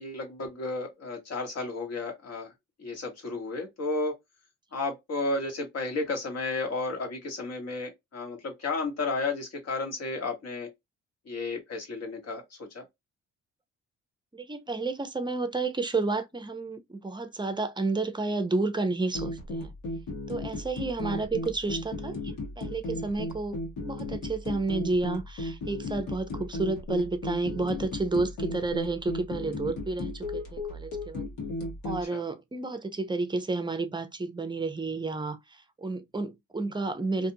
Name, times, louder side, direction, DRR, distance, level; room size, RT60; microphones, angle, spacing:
voice 1, 0.0-2.5 2.8-4.1 4.7-10.7 11.3-12.8 32.1-32.2, left 3 dB, 55° left, 1.4 m, -33 dB
voice 2, 14.3-19.7 20.3-23.6 23.8-31.2 31.8-37.3, right 3 dB, 15° right, 0.6 m, -31 dB
sound 1, 19.1-32.0, left 2 dB, 75° left, 1.3 m, -35 dB
2.6 x 2.4 x 2.7 m
cardioid pair, 90°, 30 cm